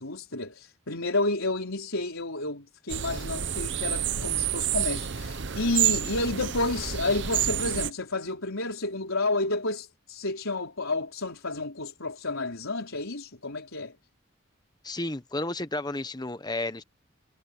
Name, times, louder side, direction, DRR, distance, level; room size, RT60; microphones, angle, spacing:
voice 1, 0.0-13.9, left 2 dB, 85° left, 4.2 m, -30 dB
sound 1, 2.9-7.9, right 10 dB, 60° right, 0.8 m, -29 dB
voice 2, 14.8-16.8, left 2 dB, 20° left, 1.0 m, -32 dB
head